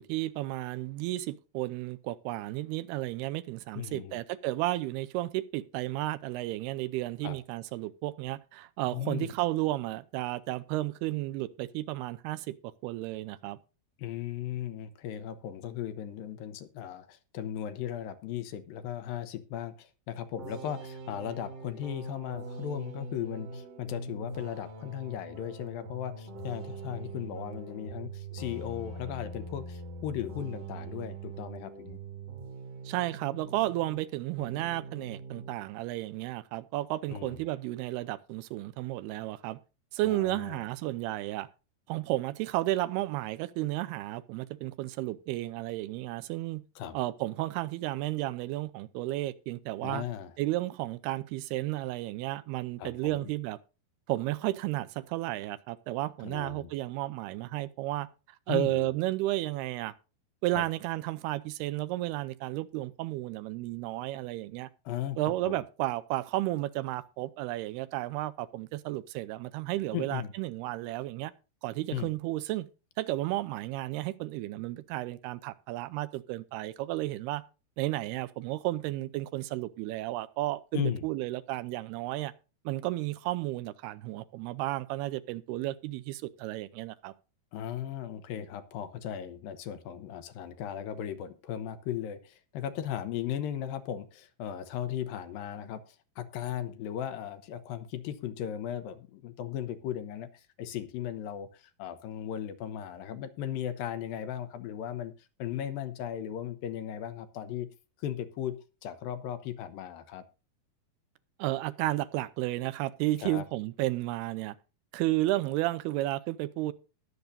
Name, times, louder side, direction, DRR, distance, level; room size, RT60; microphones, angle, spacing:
voice 1, 0.0-12.6 12.8-13.6 32.9-39.6 39.9-41.5 41.9-46.6 46.9-50.1 50.4-53.6 54.1-58.1 58.5-59.9 60.4-64.7 65.2-71.3 71.6-72.7 73.0-77.4 77.8-82.3 82.7-87.1 111.4-114.6 114.9-116.7, right 17 dB, 90° right, 2.7 m, -33 dB
voice 2, 3.7-4.2 7.2-7.4 8.9-9.3 14.0-32.0 37.1-37.4 40.1-40.6 46.8-46.9 49.8-50.3 52.8-53.3 56.2-56.7 58.5-58.9 60.5-60.6 64.9-65.2 65.5-65.6 69.9-70.3 71.9-72.1 80.7-81.0 87.5-105.1 105.4-107.7 108.0-108.5 108.8-110.2 113.2-113.4, left 10 dB, 75° left, 2.4 m, -37 dB
sound 1, 20.4-34.1 34.4-35.6, right 3 dB, 50° right, 2.3 m, -43 dB
21.0 x 7.0 x 2.7 m
omnidirectional pair, 4.5 m